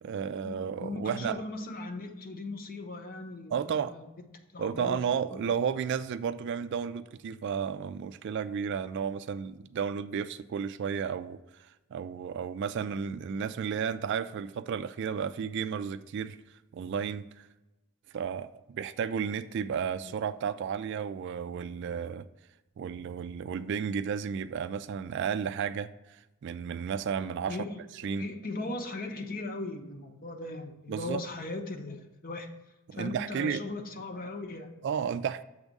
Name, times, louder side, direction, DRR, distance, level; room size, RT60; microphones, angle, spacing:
voice 1, 0.0-1.4 3.5-3.9 4.6-11.4 11.9-16.4 16.7-17.5 18.1-22.2 22.8-27.6 28.0-28.3 30.9-31.2 32.9-33.6 34.8-35.4, right 7 dB, 55° right, 12 dB, 0.3 m, -33 dB
voice 2, 0.8-4.0 4.5-5.0 5.3-5.4 20.0-20.1 27.5-27.8 28.1-32.5 32.9-34.7, left 2 dB, 45° left, 5 dB, 0.8 m, -38 dB
7.1 x 3.6 x 5.2 m, 1.0 s
head